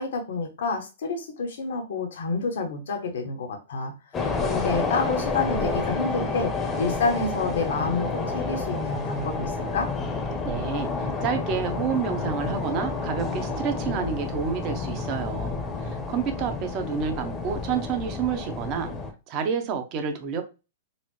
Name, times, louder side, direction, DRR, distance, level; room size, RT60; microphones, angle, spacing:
voice 1, 0.0-3.9 4.4-6.5 6.8-9.9, left 3 dB, 70° left, 0.9 m, -28 dB
sound 1, 4.1-19.1, left 4 dB, 20° left, 0.7 m, -30 dB
voice 2, 10.4-18.9 19.3-20.4, right 6 dB, 40° right, 0.8 m, -29 dB
4.1 x 2.0 x 3.1 m
hypercardioid pair, 120°, 0 cm